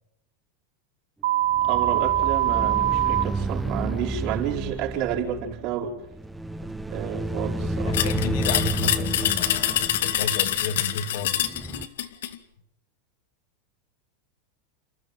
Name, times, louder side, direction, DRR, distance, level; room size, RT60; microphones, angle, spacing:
sound 1, 1.2-3.2, right 13 dB, 70° right, 2.2 m, -22 dB
sound 2, 1.5-11.9, right 2 dB, 5° right, 0.9 m, -31 dB
voice 1, 1.6-6.0 6.9-8.0, right 9 dB, 45° right, -1 dB, 5.1 m, -30 dB
voice 2, 7.8-11.5, left 6 dB, 55° left, 10 dB, 2.2 m, -32 dB
sound 3, 7.9-12.4, left 11 dB, 85° left, 2.1 m, -25 dB
29.5 x 14.0 x 9.4 m, 0.80 s
supercardioid pair, 160°, 0 cm